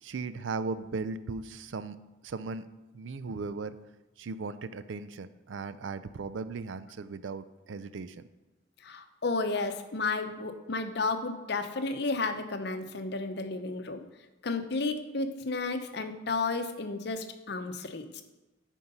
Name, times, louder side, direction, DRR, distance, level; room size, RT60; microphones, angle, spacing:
voice 1, 0.0-2.0 2.2-2.7 2.9-3.8 4.2-8.3, right 4 dB, 85° right, 14 dB, 0.4 m, -37 dB
voice 2, 8.8-14.0 14.4-18.2, left 3 dB, 60° left, 8 dB, 0.7 m, -32 dB
9.4 x 4.6 x 5.4 m, 1.0 s
head